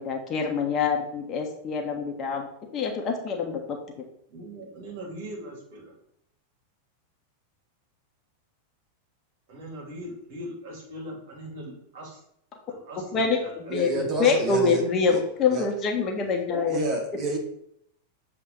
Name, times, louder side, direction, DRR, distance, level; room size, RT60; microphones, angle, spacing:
voice 1, 0.0-2.5 2.7-3.6 13.1-16.8, left 5 dB, 30° left, 2 dB, 1.2 m, -25 dB
voice 2, 4.3-5.9 9.5-12.2 12.7-14.2, equal, 50° right, -1 dB, 2.6 m, -41 dB
voice 3, 13.7-14.8 15.1-15.2 15.5-15.7 16.7-17.4, right 2 dB, 30° right, 1 dB, 2.0 m, -28 dB
7.5 x 3.5 x 5.3 m, 0.74 s
figure-of-eight pair, 90°, 0 cm